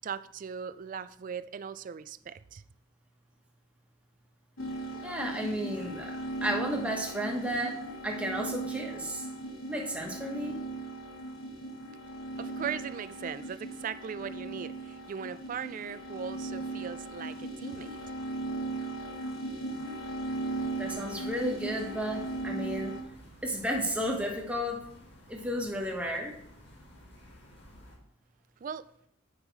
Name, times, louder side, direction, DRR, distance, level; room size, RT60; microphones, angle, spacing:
voice 1, 0.0-2.6 12.4-18.0 28.6-28.8, right 7 dB, 40° right, 0.3 m, -39 dB
sound 1, 4.6-23.0, right 2 dB, 80° left, 1.4 m, -38 dB
voice 2, 5.0-9.3 9.7-10.6 20.7-23.0 23.4-24.9 25.3-26.4, equal, 5° right, 1.2 m, -33 dB
sound 2, 20.6-28.0, equal, 55° left, 1.7 m, -54 dB
8.2 x 5.3 x 4.6 m
head